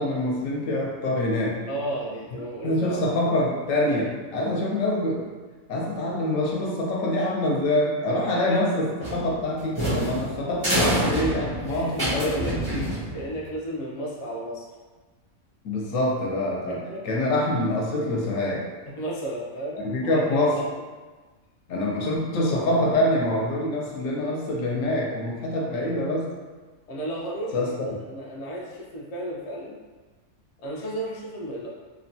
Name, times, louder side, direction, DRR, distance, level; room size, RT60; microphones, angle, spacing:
voice 1, 0.0-1.6 2.6-5.3 5.7-12.8 15.6-18.7 19.8-20.7 21.7-26.3 27.5-27.7, left 1 dB, 70° left, -2 dB, 0.9 m, -25 dB
voice 2, 1.7-3.2 8.3-8.6 11.7-12.6 13.1-14.7 16.7-17.0 19.0-20.5 26.9-29.8 30.6-31.7, right 1 dB, 90° left, -4 dB, 0.3 m, -33 dB
sound 1, 9.0-13.5, right 1 dB, 30° right, 0.4 m, -27 dB
2.8 x 2.2 x 2.6 m, 1.3 s
omnidirectional pair, 1.5 m